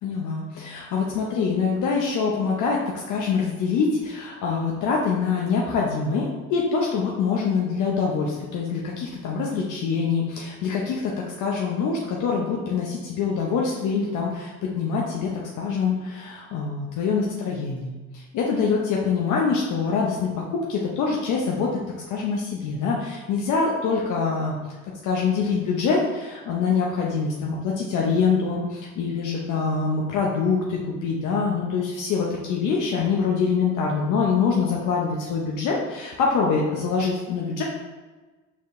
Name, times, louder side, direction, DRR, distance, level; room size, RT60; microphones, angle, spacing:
voice 1, 0.0-24.6 25.0-37.6, left 5 dB, 85° left, -2 dB, 0.6 m, -25 dB
4.4 x 3.6 x 2.5 m, 1.3 s
cardioid pair, 90°, 30 cm